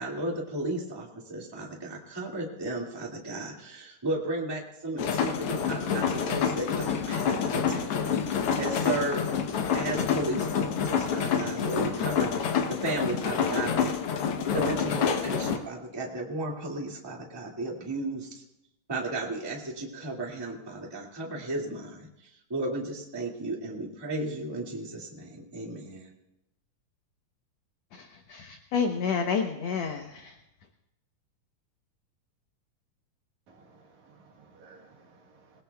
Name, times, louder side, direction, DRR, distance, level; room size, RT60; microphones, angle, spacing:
voice 1, 0.0-9.3 9.7-13.9 14.5-18.3 18.9-26.1, right 2 dB, 10° right, 1.4 m, -34 dB
sound 1, 5.0-15.6, left 7 dB, 85° left, 1.2 m, -28 dB
voice 2, 27.9-30.4, left 6 dB, 65° left, 1.8 m, -30 dB
voice 3, 33.5-35.6, right 4 dB, 65° right, 2.5 m, -57 dB
27.5 x 18.0 x 2.3 m
omnidirectional pair, 4.0 m